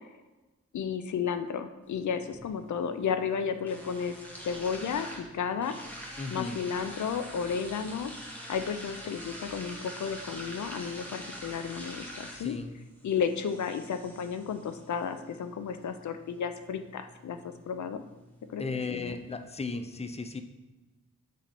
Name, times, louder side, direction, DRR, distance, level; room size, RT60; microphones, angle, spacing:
voice 1, 0.7-4.1 4.4-5.7 6.3-8.1 8.5-12.5 13.0-17.4 17.7-18.0 18.5-18.6 18.9-19.2, left 6 dB, 75° left, 9 dB, 0.5 m, -33 dB
sound 1, 1.8-19.8, equal, 5° left, 1.6 m, -46 dB
voice 2, 6.2-6.6 12.3-12.7 18.6-20.4, left 4 dB, 20° left, 8 dB, 0.6 m, -35 dB
6.1 x 5.7 x 4.2 m, 1.1 s
cardioid pair, 65°, 29 cm